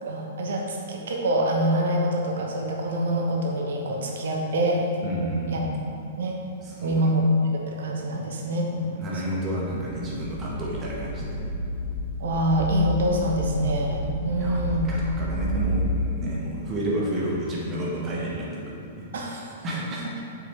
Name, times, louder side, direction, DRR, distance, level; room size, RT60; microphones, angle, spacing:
voice 1, 0.0-4.9 5.5-5.7 6.2-6.4 6.8-7.2 7.5-8.7 12.2-14.9 19.1-19.5, right 1 dB, 60° right, 0 dB, 1.1 m, -25 dB
voice 2, 5.0-5.7 6.6-7.1 8.8-11.4 14.4-20.2, right 1 dB, 25° right, -4 dB, 1.7 m, -31 dB
sound 1, 9.8-16.0, equal, 50° left, 1.2 m, -30 dB
7.8 x 6.2 x 3.4 m, 2.7 s
figure-of-eight pair, 105°, 0 cm